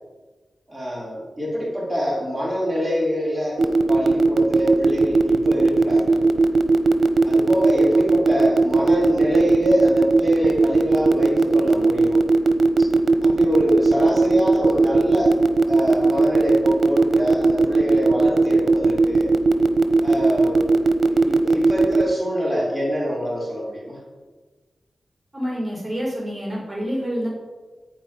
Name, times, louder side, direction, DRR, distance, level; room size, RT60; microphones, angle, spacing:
voice 1, 0.7-6.3 7.2-12.2 12.8-12.9 13.2-15.3 15.7-19.3 20.0-20.8 21.1-24.0, equal, ahead, -6 dB, 4.7 m, -25 dB
sound 1, 3.6-22.0, right 3 dB, 75° right, 1.0 m, -17 dB
voice 2, 25.3-27.3, equal, 20° right, -4 dB, 4.5 m, -27 dB
14.5 x 5.1 x 9.4 m, 1.3 s
wide cardioid pair, 105°, 0 cm